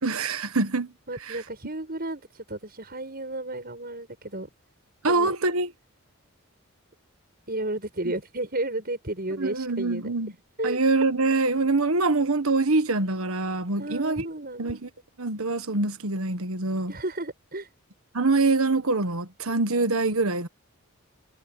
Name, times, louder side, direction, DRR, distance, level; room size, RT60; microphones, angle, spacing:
voice 1, 0.0-0.9 1.3-1.4 5.0-5.7 9.4-10.3 10.6-14.3 14.6-14.9 15.2-16.9 18.1-20.5, right 3 dB, 75° right, 1.5 m, -24 dB
voice 2, 1.1-4.5 5.0-5.4 7.5-10.1 10.6-10.8 13.8-14.8 16.9-17.7, right 1 dB, 45° right, 7.8 m, -33 dB
head